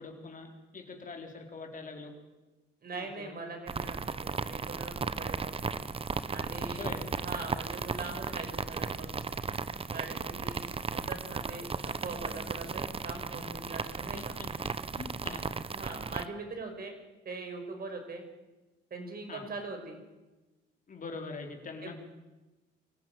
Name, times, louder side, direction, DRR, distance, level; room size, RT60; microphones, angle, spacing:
voice 1, 0.0-2.1 2.9-3.4 6.6-7.0 14.1-14.2 15.0-15.5 15.9-16.0 19.3-19.4 20.9-21.9, left 4 dB, 40° left, 2 dB, 4.2 m, -43 dB
voice 2, 2.8-5.7 6.3-6.8 7.1-9.3 9.9-14.4 15.7-16.9 17.2-18.2 18.9-20.0 21.8-22.0, right 3 dB, 50° right, 4 dB, 5.6 m, -42 dB
sound 1, 3.7-16.2, right 4 dB, 30° right, 1.0 m, -36 dB
23.5 x 14.5 x 9.1 m, 1.1 s
cardioid pair, 90°, 20 cm